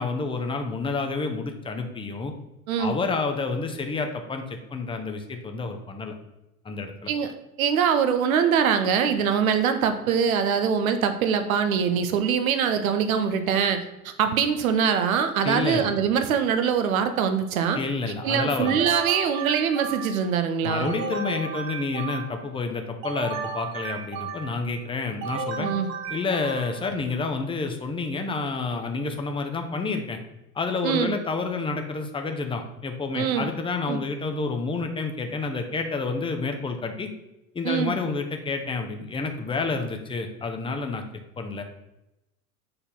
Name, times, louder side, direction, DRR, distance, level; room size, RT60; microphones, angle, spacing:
voice 1, 0.0-2.3 2.8-6.1 6.6-7.1 15.4-16.0 17.7-18.9 20.6-25.7 26.1-30.2 30.5-37.1 37.5-41.0 41.4-41.6, left 4 dB, 10° left, 4 dB, 0.9 m, -29 dB
voice 2, 7.6-17.8 18.2-20.9 25.6-25.9 30.8-31.2 33.1-33.5 33.9-34.0 37.6-37.9, right 7 dB, 65° right, 8 dB, 0.9 m, -23 dB
sound 1, 18.7-20.3 20.8-22.5 23.0-24.7 25.2-26.9, right 5 dB, 50° right, 1.2 m, -34 dB
6.9 x 4.2 x 5.4 m, 0.91 s
figure-of-eight pair, 80°, 45 cm